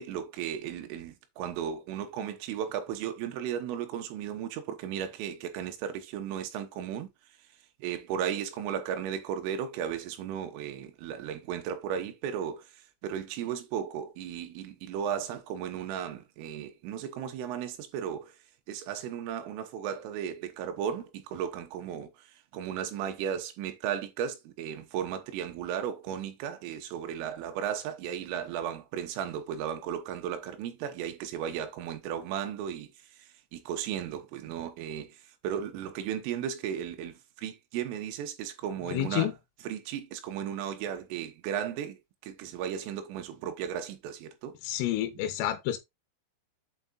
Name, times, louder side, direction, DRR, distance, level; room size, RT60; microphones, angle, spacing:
voice 1, 0.0-7.1 7.8-12.7 13.0-18.3 18.7-32.9 33.2-35.2 35.4-39.3 39.7-44.6, right 9 dB, 80° right, 3.6 m, -35 dB
voice 2, 38.9-39.3 44.6-45.8, left 13 dB, 85° left, 3.5 m, -29 dB
7.9 x 4.8 x 4.0 m
omnidirectional pair, 6.0 m